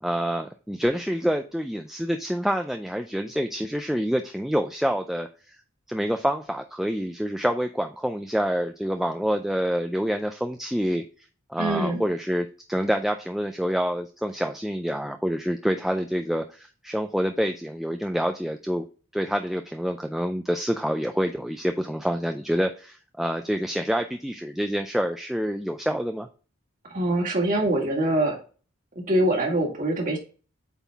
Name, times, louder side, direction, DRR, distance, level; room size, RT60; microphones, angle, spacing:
voice 1, 0.0-5.6 5.9-11.0 11.5-18.9 19.1-26.3, equal, ahead, 5 dB, 0.3 m, -27 dB
voice 2, 11.6-12.0 26.9-28.4 29.0-30.2, right 1 dB, 40° right, 0 dB, 2.0 m, -24 dB
8.2 x 3.9 x 3.5 m, 0.37 s
head